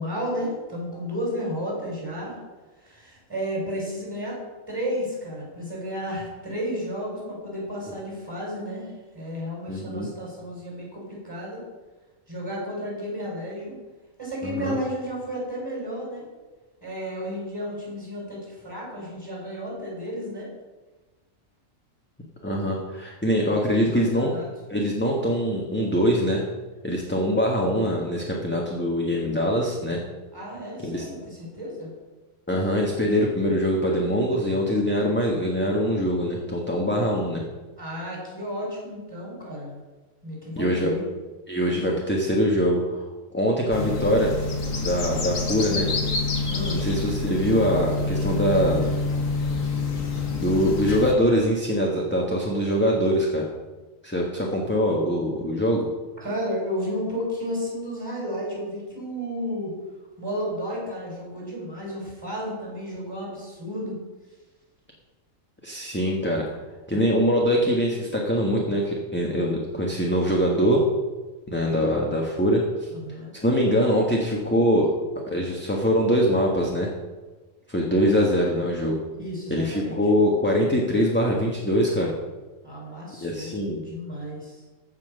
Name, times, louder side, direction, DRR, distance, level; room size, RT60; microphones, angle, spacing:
voice 1, 0.0-2.4 2.8-4.4 4.7-8.9 9.1-11.6 12.3-13.8 14.2-16.3 16.8-20.5 23.6-24.5 30.3-31.9 37.8-39.8 40.2-41.0 46.5-46.8 50.6-50.7 56.2-59.7 60.2-63.9 72.9-73.3 79.2-80.0 82.6-84.6, equal, 15° right, -4 dB, 5.0 m, -32 dB
voice 2, 9.7-10.1 14.4-14.8 22.4-24.3 24.7-26.4 26.8-30.0 30.8-31.1 32.5-37.4 40.6-40.9 41.5-43.1 43.3-44.3 44.8-45.9 46.7-48.9 50.3-53.4 54.0-55.9 65.6-66.4 66.9-70.8 71.5-72.9 73.4-74.9 75.3-76.9 77.7-79.0 79.5-82.1 83.2-83.8, equal, 10° left, -2 dB, 1.4 m, -23 dB
sound 1, 43.7-51.1, left 3 dB, 80° left, 2.0 m, -27 dB
14.5 x 5.9 x 6.6 m, 1.2 s
omnidirectional pair, 1.3 m